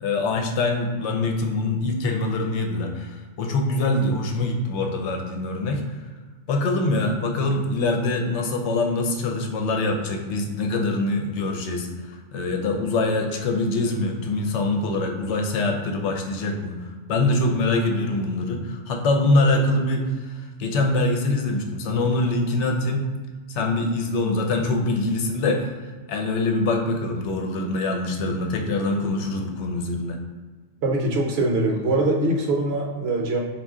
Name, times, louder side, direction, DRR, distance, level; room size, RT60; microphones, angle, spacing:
voice 1, 0.0-5.8 6.5-11.9 12.3-23.1 23.5-25.7 26.1-30.2, left 2 dB, 70° left, 2 dB, 0.9 m, -24 dB
voice 2, 30.8-33.4, right 2 dB, 60° right, 0 dB, 0.9 m, -22 dB
4.4 x 2.4 x 3.5 m, 1.4 s
omnidirectional pair, 1.3 m